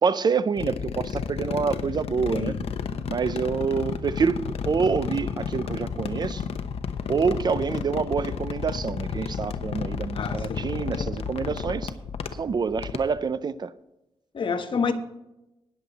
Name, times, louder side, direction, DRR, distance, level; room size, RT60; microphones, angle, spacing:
voice 1, 0.0-2.6 3.1-6.4 7.1-11.9 12.4-13.7, right 5 dB, 40° right, 0.5 m, -27 dB
sound 1, 0.6-13.2, left 6 dB, 75° left, 0.9 m, -32 dB
voice 2, 10.1-11.1 14.3-14.9, left 5 dB, 50° left, 1.2 m, -29 dB
19.0 x 7.5 x 4.0 m
wide cardioid pair, 135°, 11 cm